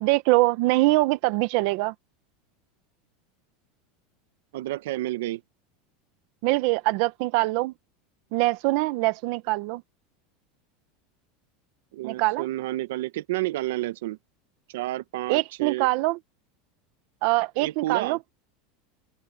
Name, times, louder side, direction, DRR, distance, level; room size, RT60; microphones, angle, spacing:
voice 1, 0.0-1.9 6.4-7.7 8.3-9.8 12.0-12.5 15.3-16.2 17.2-18.3, right 20 dB, 55° right, 0.8 m, -23 dB
voice 2, 4.5-5.4 11.9-14.2 14.7-15.9 17.6-18.2, right 16 dB, 80° right, 1.1 m, -30 dB
open air
supercardioid pair, 160°, 0 cm